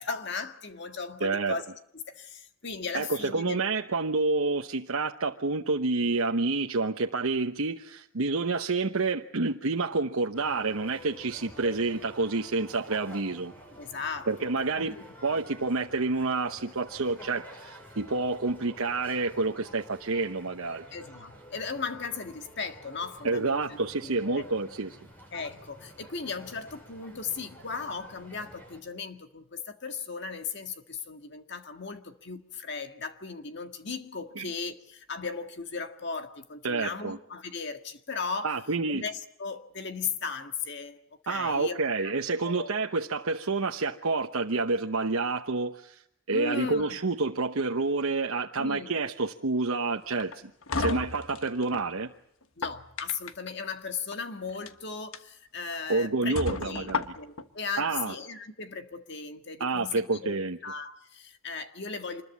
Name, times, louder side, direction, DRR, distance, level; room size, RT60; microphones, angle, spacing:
voice 1, 0.0-1.6 2.1-3.6 13.8-15.0 20.9-24.5 25.3-38.6 38.9-42.1 42.4-42.7 46.3-47.0 48.6-48.9 50.8-51.0 52.6-60.4 60.6-62.2, left 5 dB, 55° left, 1.8 m, -37 dB
voice 2, 1.2-1.6 2.9-13.5 14.3-14.9 15.2-20.8 23.2-25.0 34.4-34.5 36.6-37.2 38.4-39.0 41.3-46.0 46.3-50.3 50.8-52.1 55.9-57.0 57.8-58.1 59.6-60.6, right 3 dB, 90° right, 1.0 m, -28 dB
sound 1, 10.3-28.8, equal, 10° left, 6.4 m, -49 dB
sound 2, 50.2-51.9 52.4-53.5 54.5-54.7 55.1-55.2 55.7-55.8 56.4-57.5, left 3 dB, 85° left, 1.3 m, -33 dB
26.5 x 21.0 x 8.3 m
head